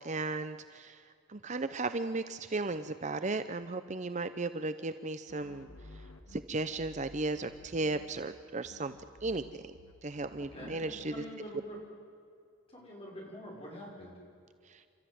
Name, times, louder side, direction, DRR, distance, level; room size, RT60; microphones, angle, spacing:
voice 1, 0.0-8.9 9.2-9.7 10.0-11.2 14.6-14.8, right 2 dB, 35° right, 11 dB, 0.6 m, -36 dB
sound 1, 5.3-8.4 8.6-11.2, left 2 dB, 80° left, 2.1 m, -54 dB
voice 2, 10.4-11.8 12.7-14.1, equal, 25° left, -2 dB, 6.0 m, -46 dB
29.5 x 13.5 x 9.3 m, 2.4 s
head